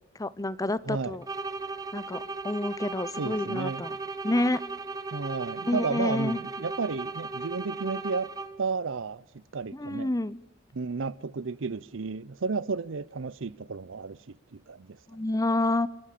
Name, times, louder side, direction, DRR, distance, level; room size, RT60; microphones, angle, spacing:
voice 1, 0.2-1.3 1.9-3.9 4.2-4.6 5.7-6.4 9.7-10.4 15.1-15.9, left 1 dB, 15° left, 0.6 m, -28 dB
voice 2, 0.9-1.2 3.2-3.8 5.1-8.3 8.6-9.2 9.5-10.1 10.7-15.0, right 4 dB, 75° right, 0.6 m, -32 dB
sound 1, 1.2-8.7, right 3 dB, 20° right, 0.8 m, -37 dB
27.0 x 14.0 x 8.4 m
head